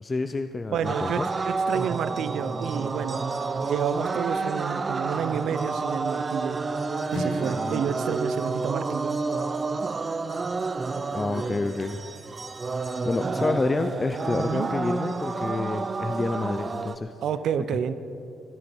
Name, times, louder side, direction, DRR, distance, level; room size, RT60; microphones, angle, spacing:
voice 1, 0.0-1.3 11.1-12.0 13.0-17.1, left 3 dB, 30° left, 9 dB, 0.5 m, -28 dB
voice 2, 0.7-3.2 3.6-6.6 7.1-9.2 14.4-14.7 17.2-17.9, right 8 dB, 70° right, 13 dB, 0.6 m, -29 dB
sound 1, 0.8-17.0, right 4 dB, 35° right, 0.6 m, -30 dB
Strum, 7.1-11.2, left 2 dB, 80° left, 1.9 m, -40 dB
20.0 x 9.8 x 4.5 m, 2.7 s
cardioid pair, 90°, 0 cm